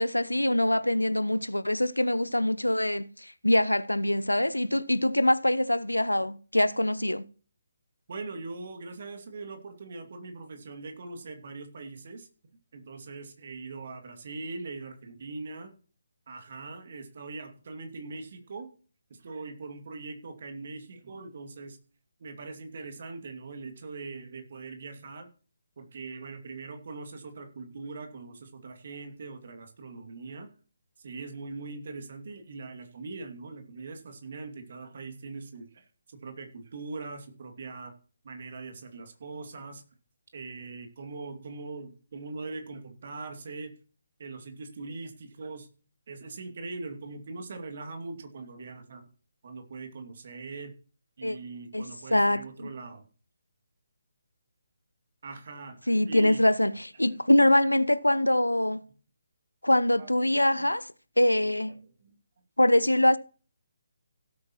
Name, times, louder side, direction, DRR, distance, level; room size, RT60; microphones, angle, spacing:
voice 1, 0.0-7.2 51.2-51.4 51.7-52.7 55.9-58.8 59.6-60.9 61.2-61.7 62.6-63.2, left 1 dB, 90° left, 0.7 m, -24 dB
voice 2, 8.1-12.3 12.7-15.7 16.3-18.7 19.1-21.8 22.2-25.3 25.8-30.5 31.0-35.8 36.2-37.9 38.2-39.8 40.3-43.8 44.2-45.7 46.1-49.0 49.4-50.7 51.2-53.0 55.2-56.4 60.0-60.1 60.6-60.7 61.4-61.5 61.8-62.1, right 3 dB, 50° right, 2.4 m, -41 dB
17.0 x 8.4 x 3.0 m
figure-of-eight pair, 145°, 0 cm